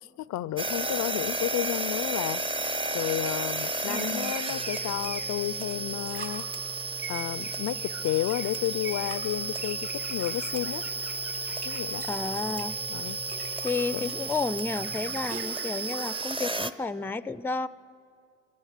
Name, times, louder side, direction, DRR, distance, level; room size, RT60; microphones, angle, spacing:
voice 1, 0.2-2.5 2.9-6.5 7.1-10.8 11.6-12.0 12.9-13.7 13.9-14.1, left 14 dB, 70° left, 0.5 m, -32 dB
sound 1, 0.6-16.7, right 3 dB, 15° right, 0.8 m, -33 dB
sound 2, 3.0-6.3 6.9-13.2 13.6-16.3, right 4 dB, 65° right, 3.7 m, -45 dB
voice 2, 3.8-4.4 12.1-12.7 13.6-17.7, left 3 dB, 5° left, 0.4 m, -31 dB
sound 3, 5.0-5.1 5.9-6.4 8.0-8.7 9.1-9.4 10.1-10.8 11.1-15.4, right 3 dB, 50° right, 5.8 m, -45 dB
21.5 x 19.0 x 6.6 m
cardioid pair, 90°, 30 cm